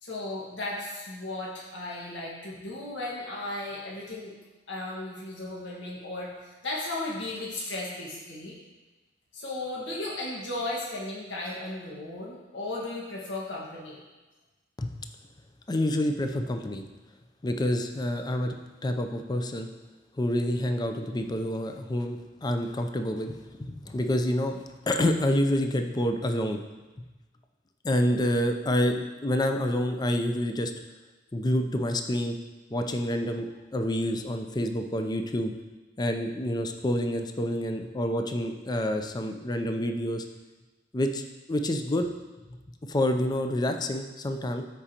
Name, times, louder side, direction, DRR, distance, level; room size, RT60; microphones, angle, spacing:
voice 1, 0.0-4.3 4.7-8.5 9.3-14.0, left 2 dB, 80° left, -4 dB, 1.6 m, -35 dB
voice 2, 15.7-16.8 17.4-18.6 18.8-19.7 20.2-26.6 27.8-30.7 31.3-32.4 32.7-35.5 36.0-40.2 40.9-41.2 41.5-42.1 42.8-44.6, left 1 dB, 20° left, 6 dB, 0.5 m, -28 dB
13.0 x 4.9 x 2.9 m, 1.2 s
head